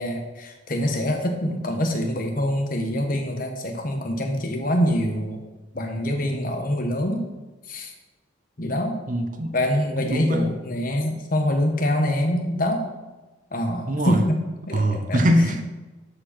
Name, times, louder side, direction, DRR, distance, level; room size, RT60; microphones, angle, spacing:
voice 1, 0.0-5.4 5.7-7.2 7.7-7.9 8.6-9.0 9.5-12.8 13.5-14.4 14.7-15.2, equal, 45° left, 3 dB, 1.2 m, -25 dB
voice 2, 6.2-6.5 9.1-9.5 10.0-10.5 13.9-14.2 14.7-15.6, equal, 40° right, 7 dB, 0.7 m, -22 dB
12.0 x 5.1 x 4.3 m, 1.2 s
head